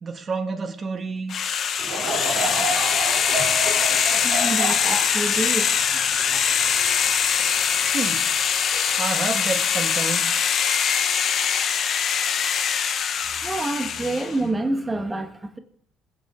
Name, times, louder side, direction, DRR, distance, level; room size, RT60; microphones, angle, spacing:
voice 1, 0.0-1.4 7.8-8.3 8.9-10.3, right 4 dB, 40° right, 1.9 m, -29 dB
sound 1, 1.3-14.4, left 7 dB, 55° left, 1.2 m, -23 dB
Laughter / Crowd, 1.8-7.3 7.8-7.9 8.7-9.0, right 2 dB, 55° right, 3.4 m, -30 dB
voice 2, 4.2-5.7 13.3-15.6, right 2 dB, 20° right, 1.6 m, -27 dB
21.5 x 7.8 x 3.9 m
supercardioid pair, 70°, 0 cm